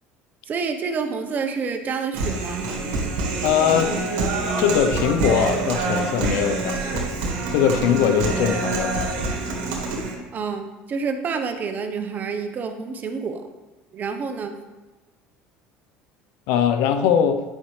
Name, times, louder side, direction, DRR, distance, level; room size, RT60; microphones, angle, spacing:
voice 1, 0.5-2.7 10.3-13.5 13.9-14.6, right 5 dB, 40° right, 7 dB, 0.9 m, -28 dB
Human voice, 2.1-10.1, right 3 dB, 80° right, 1.7 m, -26 dB
voice 2, 3.4-4.0 4.6-7.1 7.5-9.4 16.5-17.4, left 8 dB, 75° left, 9 dB, 0.7 m, -21 dB
9.6 x 5.6 x 3.2 m, 1.2 s
supercardioid pair, 100°, 5 cm